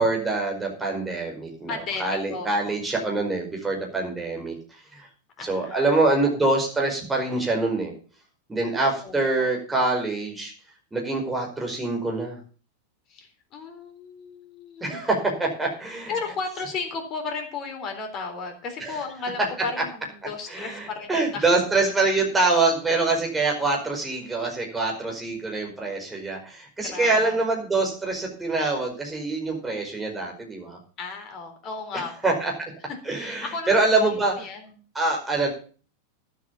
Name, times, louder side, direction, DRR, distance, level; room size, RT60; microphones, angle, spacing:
voice 1, 0.0-1.7 2.0-4.5 4.9-5.1 5.4-7.9 8.5-10.5 10.9-12.4 14.8-16.1 18.8-18.9 20.5-30.8 32.2-32.5 33.0-34.3 34.9-35.5, right 3 dB, 10° right, 1 dB, 5.1 m, -25 dB
voice 2, 1.7-2.8 5.4-6.0 9.0-9.5 13.1-15.0 16.1-21.4 26.8-27.4 30.1-30.2 31.0-32.3 33.1-34.8, left 4 dB, 35° left, 4 dB, 3.8 m, -35 dB
12.0 x 8.0 x 7.1 m, 0.40 s
figure-of-eight pair, 90°, 0 cm